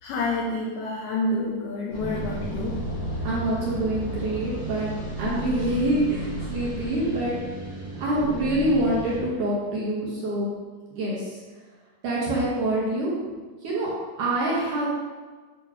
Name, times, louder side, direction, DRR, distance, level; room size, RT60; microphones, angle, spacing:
voice 1, 0.0-2.8, left 2 dB, 80° left, -4 dB, 2.4 m, -28 dB
sound 1, 1.9-9.2, right 1 dB, 45° left, 1.7 m, -33 dB
voice 2, 3.2-4.9 5.2-7.4 8.0-10.5 10.9-11.2 12.0-13.1 13.6-13.9 14.2-14.9, right 1 dB, 70° right, -6 dB, 2.1 m, -25 dB
8.2 x 2.9 x 4.8 m, 1.4 s
omnidirectional pair, 4.7 m